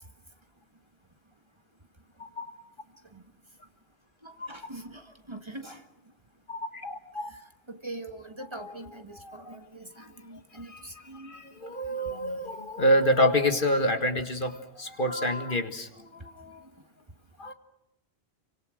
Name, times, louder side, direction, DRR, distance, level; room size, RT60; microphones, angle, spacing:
voice 1, 4.2-5.8 7.3-7.4 7.7-11.5 16.0-16.1, right 2 dB, 25° right, 6 dB, 1.7 m, -43 dB
voice 2, 6.5-7.3 9.2-9.6 10.7-10.8 11.3-16.6 17.4-17.5, equal, 55° left, 8 dB, 1.9 m, -27 dB
30.0 x 25.0 x 6.4 m, 0.86 s
omnidirectional pair, 1.0 m